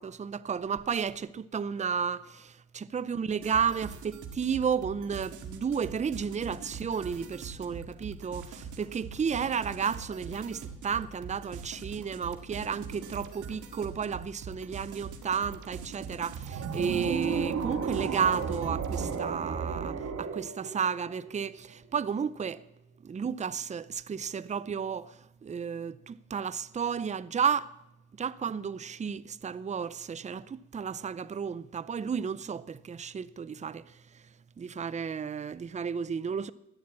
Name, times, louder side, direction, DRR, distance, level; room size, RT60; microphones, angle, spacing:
voice 1, 0.0-22.6 23.0-27.7 28.2-34.3 34.6-36.5, right 6 dB, 25° right, 0.5 m, -32 dB
sound 1, 3.4-19.2, right 5 dB, 75° right, 2.0 m, -43 dB
sound 2, 16.3-21.6, right 6 dB, 55° right, 1.8 m, -34 dB
13.0 x 9.4 x 8.6 m
cardioid pair, 90°, 30 cm